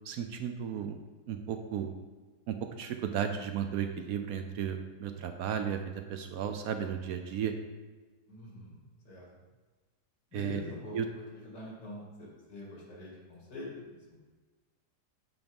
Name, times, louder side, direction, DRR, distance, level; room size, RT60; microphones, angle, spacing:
voice 1, 0.1-1.0 1.3-1.9 2.5-5.8 6.1-7.5 10.3-10.6 10.9-11.0, right 8 dB, 70° right, 7 dB, 0.9 m, -34 dB
voice 2, 8.3-8.8 9.0-9.3 10.3-14.1, left 1 dB, 90° left, -4 dB, 2.7 m, -45 dB
7.9 x 3.5 x 5.2 m, 1.3 s
omnidirectional pair, 1.8 m